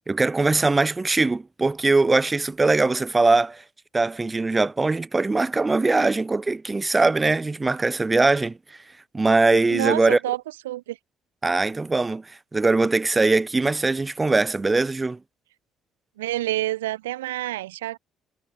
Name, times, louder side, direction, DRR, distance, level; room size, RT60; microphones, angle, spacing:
voice 1, 0.1-3.6 3.9-8.6 9.1-10.2 11.4-15.2, right 3 dB, 20° right, 2.3 m, -21 dB
voice 2, 9.7-11.0 16.2-18.0, right 15 dB, 85° right, 1.9 m, -28 dB
hypercardioid pair, 50°, 0 cm